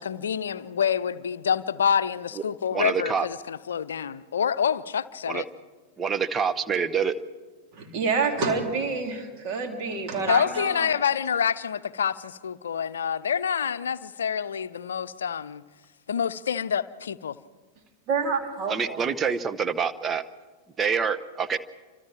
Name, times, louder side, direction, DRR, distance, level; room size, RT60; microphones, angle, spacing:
voice 1, 0.0-5.5 10.3-15.6 16.1-17.4, left 7 dB, 65° left, 0.7 m, -27 dB
voice 2, 2.7-3.3 5.3-5.4 6.0-7.1 18.7-20.2 20.8-21.6, right 6 dB, 20° right, 1.0 m, -26 dB
voice 3, 7.7-10.9 18.1-19.1, right 4 dB, 40° right, 3.6 m, -28 dB
29.0 x 25.5 x 4.5 m
figure-of-eight pair, 90°, 0 cm